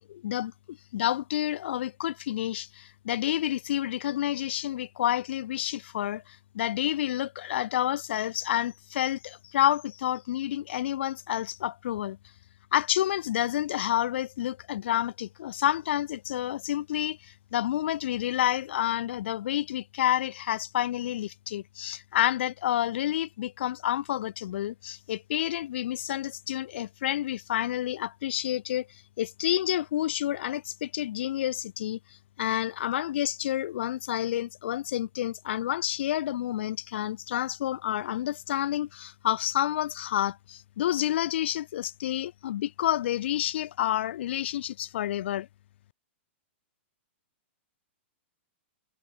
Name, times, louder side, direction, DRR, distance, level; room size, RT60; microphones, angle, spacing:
voice 1, 0.1-12.2 12.7-32.0 32.4-45.5, left 12 dB, 60° left, 0.5 m, -29 dB
hypercardioid pair, 160°, 7 cm